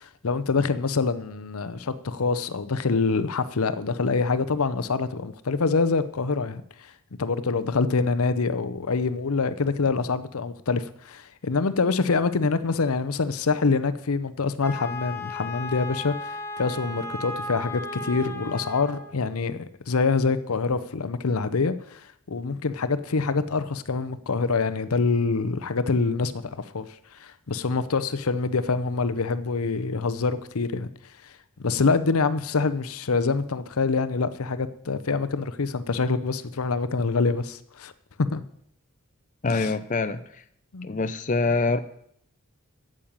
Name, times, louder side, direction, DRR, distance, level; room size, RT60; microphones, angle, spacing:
voice 1, 0.0-6.9 7.2-22.0 22.3-26.9 27.2-30.9 31.2-31.3 31.6-37.9 38.2-38.4 39.5-39.7 40.7-40.9, left 4 dB, 80° left, 0.7 m, -25 dB
Wind instrument woodwind instrument, 14.6-19.2, left 2 dB, 10° left, 1.2 m, -35 dB
voice 2, 39.4-40.2 40.8-41.8, left 3 dB, 35° left, 0.5 m, -24 dB
8.7 x 7.6 x 8.8 m
head